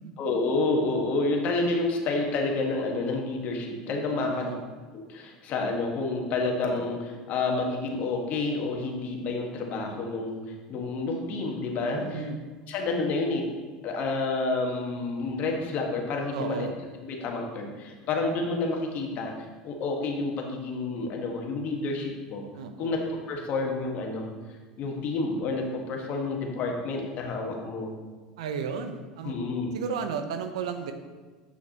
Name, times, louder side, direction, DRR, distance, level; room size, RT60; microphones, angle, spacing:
voice 1, 0.2-4.5 4.9-10.4 10.7-12.2 12.7-13.5 13.8-16.7 17.0-22.4 22.8-24.3 24.8-27.9 29.2-29.7, left 3 dB, 55° left, 1 dB, 1.5 m, -29 dB
voice 2, 4.1-4.6 11.9-12.4 16.3-16.7 22.5-23.0 28.4-29.3 29.7-30.9, right 6 dB, 80° right, 7 dB, 0.7 m, -33 dB
7.8 x 6.3 x 2.9 m, 1.4 s
hypercardioid pair, 85°, 3 cm